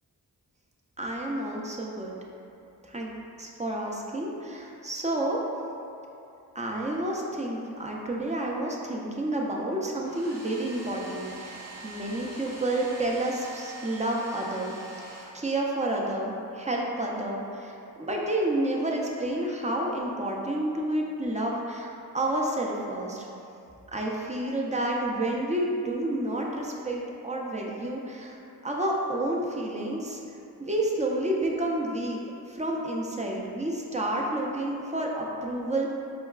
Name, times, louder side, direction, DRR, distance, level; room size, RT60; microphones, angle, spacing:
voice 1, 1.0-2.2 2.9-3.1 3.4-5.4 6.6-11.6 11.8-14.7 15.3-23.3 23.9-28.3 28.6-30.2 30.6-32.2 32.5-35.9, right 1 dB, 20° right, -2 dB, 0.4 m, -30 dB
Domestic sounds home sounds, 10.0-15.9, right 1 dB, 90° right, 1.0 m, -44 dB
4.4 x 2.2 x 2.3 m, 2.6 s
cardioid pair, 50°, 40 cm